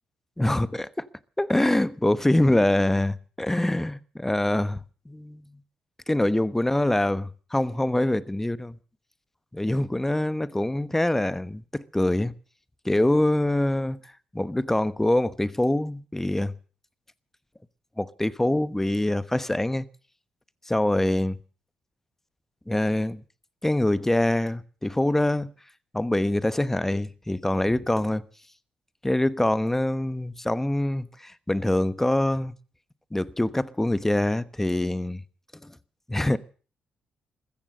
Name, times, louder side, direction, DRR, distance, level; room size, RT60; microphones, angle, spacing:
voice 1, 0.4-1.1 1.4-5.4 6.1-7.2 7.5-8.8 9.5-12.3 12.8-14.0 14.3-16.5 18.0-19.9 20.7-21.4 22.7-23.2 23.6-25.5 25.9-28.2 29.0-32.5 33.1-35.2 35.6-35.7 36.1-36.4, left 1 dB, 10° left, 1.1 m, -24 dB
14.5 x 14.5 x 6.5 m
supercardioid pair, 60°, 3 cm